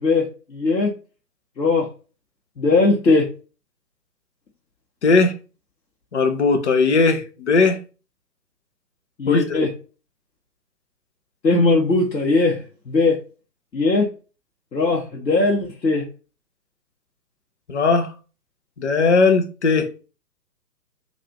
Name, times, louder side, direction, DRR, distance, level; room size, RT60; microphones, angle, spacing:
voice 1, 0.0-0.9 1.6-1.9 2.6-3.3 9.2-9.7 11.4-13.2 13.7-14.1 14.7-16.1, left 3 dB, 85° left, 0.9 m, -19 dB
voice 2, 5.0-5.3 6.1-7.8 9.3-9.6 17.7-18.1 18.8-19.9, left 4 dB, 45° left, 0.5 m, -18 dB
3.4 x 2.4 x 2.8 m
figure-of-eight pair, 130°, 49 cm